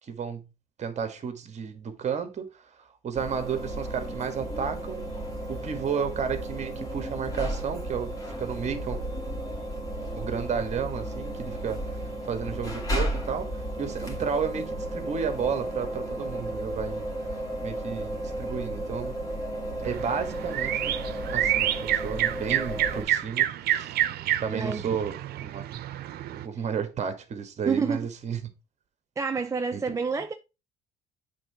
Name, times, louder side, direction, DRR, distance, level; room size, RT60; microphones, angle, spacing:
voice 1, 0.1-0.4 0.8-2.5 3.0-5.1 5.5-9.0 10.1-11.8 12.3-13.5 13.8-17.0 17.6-19.1 19.8-21.0 21.3-24.0 24.4-25.2 25.4-25.8 26.3-28.5 29.7-29.8, right 7 dB, 40° right, 1.5 m, -32 dB
sound 1, 3.1-23.1, right 1 dB, 20° left, 2.3 m, -33 dB
sound 2, 19.8-26.4, right 12 dB, 70° right, 0.7 m, -28 dB
voice 2, 24.5-25.0 26.6-26.7 27.7-28.1 29.2-30.3, right 5 dB, 20° right, 0.5 m, -28 dB
7.6 x 3.7 x 4.5 m
cardioid pair, 110°, 17 cm